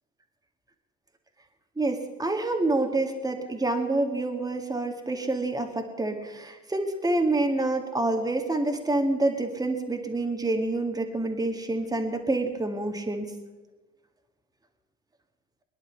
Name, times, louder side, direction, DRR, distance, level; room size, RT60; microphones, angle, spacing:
voice 1, 1.8-13.2, right 2 dB, 10° right, 4 dB, 2.0 m, -27 dB
22.5 x 10.5 x 5.7 m, 1.2 s
figure-of-eight pair, 65°, 38 cm